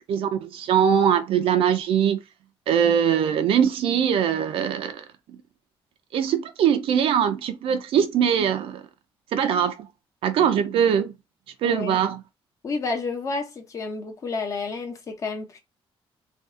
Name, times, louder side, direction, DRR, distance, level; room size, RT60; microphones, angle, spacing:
voice 1, 0.0-2.2 2.7-5.4 6.1-8.8 9.3-9.8 10.2-11.1 11.6-12.2, right 8 dB, 70° right, 0.5 m, -22 dB
voice 2, 11.6-12.0 12.6-15.6, left 4 dB, 35° left, 0.8 m, -30 dB
2.7 x 2.4 x 3.6 m
cardioid pair, 175°, 10 cm